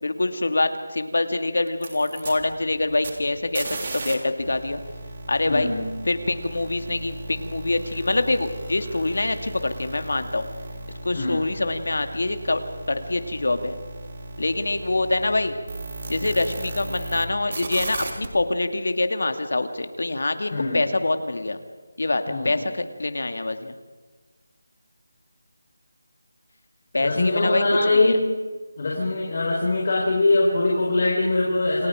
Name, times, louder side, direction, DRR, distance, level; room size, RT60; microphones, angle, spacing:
voice 1, 0.0-4.8 5.3-5.7 6.0-10.5 11.0-12.6 12.9-13.8 14.4-15.5 16.1-21.6 22.0-23.8 26.9-28.2, left 2 dB, 70° left, 7 dB, 2.5 m, -25 dB
sound 1, 1.7-4.1 4.4-17.3 17.5-18.3, right 2 dB, 40° right, 3.5 m, -36 dB
voice 2, 5.5-5.9 11.1-11.4 20.5-20.8 22.3-22.6 27.0-28.2 28.8-31.9, left 2 dB, 40° left, -3 dB, 4.9 m, -22 dB
29.0 x 22.0 x 5.1 m, 1.3 s
figure-of-eight pair, 175°, 0 cm